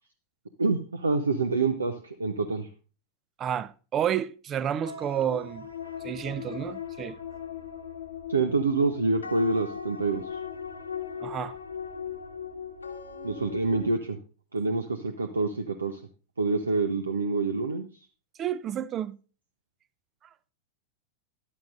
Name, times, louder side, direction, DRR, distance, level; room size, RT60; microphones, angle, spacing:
voice 1, 0.6-2.7 8.3-10.4 13.2-14.2 14.5-16.0 16.4-17.9, right 3 dB, 75° right, 0.8 m, -27 dB
voice 2, 3.4-5.7 6.0-7.2 11.2-11.6 18.4-19.2, right 9 dB, 30° right, 0.5 m, -30 dB
sound 1, 4.8-13.9, left 6 dB, 80° left, 1.4 m, -39 dB
14.0 x 12.0 x 2.5 m
figure-of-eight pair, 90°, 0 cm